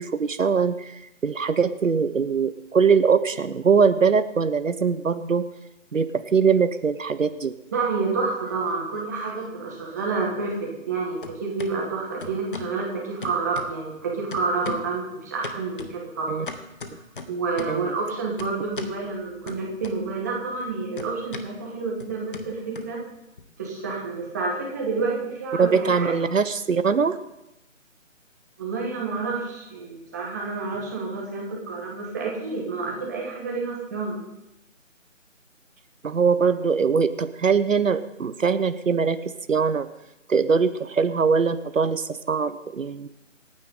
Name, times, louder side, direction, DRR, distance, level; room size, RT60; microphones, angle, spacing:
voice 1, 0.0-5.5 5.9-7.5 16.3-16.4 17.7-17.9 25.6-27.2 36.0-39.9 40.3-43.1, right 5 dB, 75° right, 11 dB, 1.1 m, -22 dB
voice 2, 7.7-16.4 17.3-23.0 23.6-26.1 28.6-34.2, right 4 dB, 15° right, -2 dB, 1.7 m, -29 dB
sound 1, 8.1-9.0 9.3-10.9 11.2-11.7 12.2-12.8 13.2-14.0 14.3-15.0 15.4-17.9 18.4-19.0 19.5-20.3 20.5-23.4, left 3 dB, 40° left, 1.3 m, -39 dB
27.5 x 9.3 x 3.8 m, 0.90 s
figure-of-eight pair, 170°, 39 cm